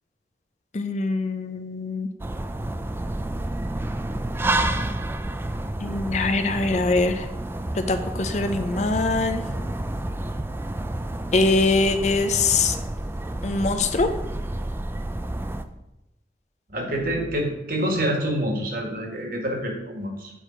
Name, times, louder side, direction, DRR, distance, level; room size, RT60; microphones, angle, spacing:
voice 1, 0.7-2.1 5.8-7.3 7.8-9.4 11.3-12.8 13.4-14.1, left 3 dB, 40° left, 8 dB, 0.5 m, -23 dB
sound 1, 2.2-15.6, right 1 dB, 15° right, 0.3 m, -29 dB
voice 2, 16.7-20.3, equal, 55° right, 1 dB, 1.7 m, -27 dB
8.0 x 4.9 x 4.3 m, 0.92 s
head